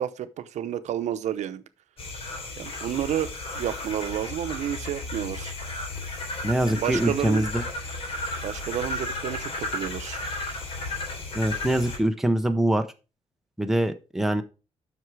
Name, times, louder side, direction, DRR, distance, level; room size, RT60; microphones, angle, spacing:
voice 1, 0.0-1.6 2.6-5.5 6.7-7.5 8.4-10.2, right 10 dB, 75° right, 0.8 m, -30 dB
sound 1, 2.0-12.0, left 2 dB, 55° left, 3.2 m, -34 dB
voice 2, 6.4-7.6 11.3-12.8 13.6-14.4, right 1 dB, 5° right, 0.7 m, -24 dB
7.9 x 6.0 x 4.7 m
wide cardioid pair, 165°, 12 cm